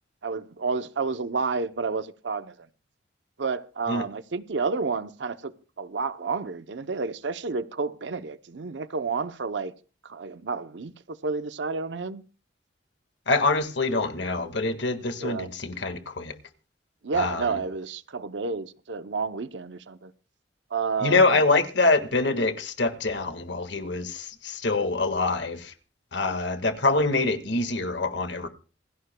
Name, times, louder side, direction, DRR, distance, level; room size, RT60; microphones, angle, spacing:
voice 1, 0.2-2.7 3.4-9.7 10.0-12.2 15.2-15.5 17.0-20.1 20.7-21.4, right 4 dB, 70° right, 0.7 m, -30 dB
voice 2, 13.3-16.4 17.1-17.5 21.0-25.7 26.1-28.5, left 3 dB, 70° left, 1.6 m, -25 dB
27.0 x 11.5 x 2.2 m
head